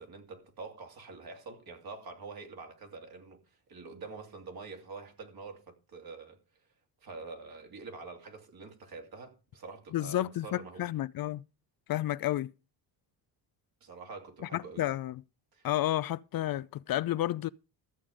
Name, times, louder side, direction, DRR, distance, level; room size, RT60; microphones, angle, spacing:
voice 1, 0.0-3.4 3.7-6.4 7.0-10.9 13.8-14.9 15.5-15.7, right 4 dB, 55° right, 2.9 m, -46 dB
voice 2, 9.9-11.4 11.9-12.5 14.5-15.1 15.6-17.5, left 14 dB, 55° left, 0.5 m, -31 dB
14.0 x 7.1 x 5.0 m
supercardioid pair, 60°, 44 cm